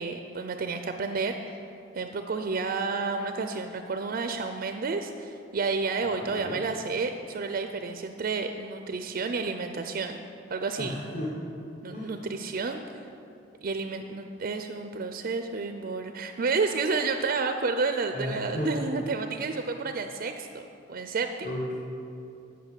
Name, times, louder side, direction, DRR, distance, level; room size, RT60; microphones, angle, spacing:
voice 1, 0.0-1.6 1.9-10.2 10.5-10.9 11.8-12.8 13.6-21.5, right 4 dB, 50° right, 7 dB, 0.4 m, -30 dB
voice 2, 6.2-6.6 10.8-11.3 11.9-12.1 18.1-18.7 21.4-21.7, left 1 dB, 45° left, -6 dB, 1.5 m, -34 dB
8.0 x 6.4 x 8.2 m, 2.7 s
head